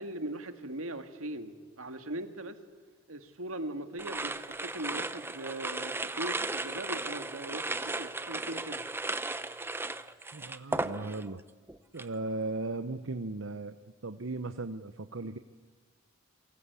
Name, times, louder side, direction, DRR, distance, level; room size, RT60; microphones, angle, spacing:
voice 1, 0.0-2.6 3.1-8.8, right 1 dB, 80° right, 8 dB, 2.1 m, -40 dB
sound 1, 4.0-11.4 11.7-12.2, right 2 dB, 10° right, 0.7 m, -36 dB
voice 2, 10.3-11.4 11.9-13.8 14.0-15.4, right 2 dB, 65° right, 10 dB, 0.8 m, -37 dB
29.5 x 23.5 x 8.3 m, 1.4 s
head